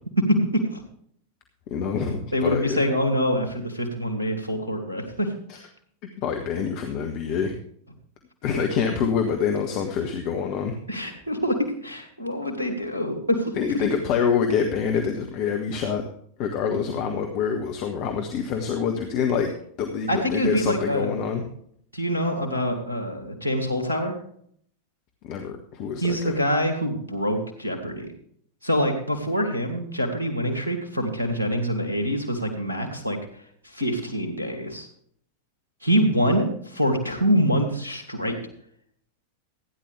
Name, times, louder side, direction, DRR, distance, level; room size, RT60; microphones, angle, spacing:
voice 1, 0.3-0.8 2.3-5.3 10.9-13.5 20.1-21.2 21.9-24.1 26.0-28.1 28.6-33.2 33.6-34.9 35.8-38.4, equal, 80° right, 3 dB, 2.6 m, -25 dB
voice 2, 1.7-2.8 5.5-5.6 6.2-7.6 8.4-10.8 13.6-16.0 16.4-19.5 19.8-21.4 25.2-26.4, left 6 dB, 45° left, 4 dB, 1.5 m, -26 dB
15.5 x 10.0 x 3.4 m, 0.64 s
figure-of-eight pair, 90°, 0 cm